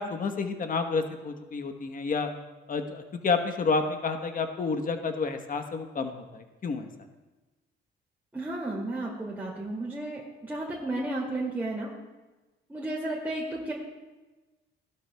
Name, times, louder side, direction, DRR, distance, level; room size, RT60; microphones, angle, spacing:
voice 1, 0.0-2.3 2.7-6.9, left 4 dB, 45° left, 6 dB, 1.2 m, -30 dB
voice 2, 8.3-11.9 12.7-13.7, right 2 dB, 10° right, -5 dB, 2.4 m, -33 dB
17.0 x 12.0 x 2.3 m, 1.2 s
cardioid pair, 90°, 20 cm